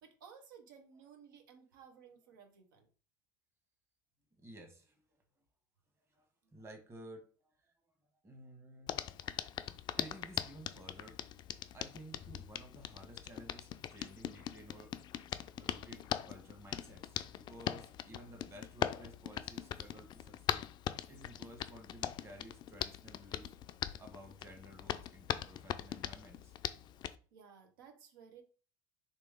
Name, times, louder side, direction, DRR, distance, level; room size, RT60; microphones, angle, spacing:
voice 1, 0.0-2.9 6.4-6.5 27.3-28.4, right 7 dB, 80° right, 4 dB, 1.0 m, -57 dB
voice 2, 4.4-5.2 6.1-6.3 6.5-7.7 8.2-9.0 9.9-11.2 11.7-14.9 15.6-20.7 21.1-23.5 24.0-26.5, right 1 dB, 25° right, 4 dB, 1.3 m, -54 dB
Hands, 8.9-27.2, left 11 dB, 45° left, 0.3 m, -41 dB
3.2 x 2.9 x 3.6 m, 0.38 s
hypercardioid pair, 80°, 11 cm